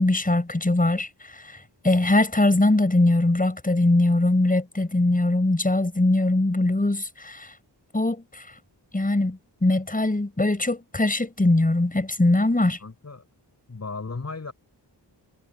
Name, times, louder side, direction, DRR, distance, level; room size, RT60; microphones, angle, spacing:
voice 1, 0.0-1.6 1.8-7.5 7.9-8.4 8.9-12.8, left 2 dB, 20° left, 6.0 m, -21 dB
voice 2, 12.8-13.2 13.7-14.5, left 4 dB, 40° left, 4.8 m, -35 dB
wide cardioid pair, 145°, 42 cm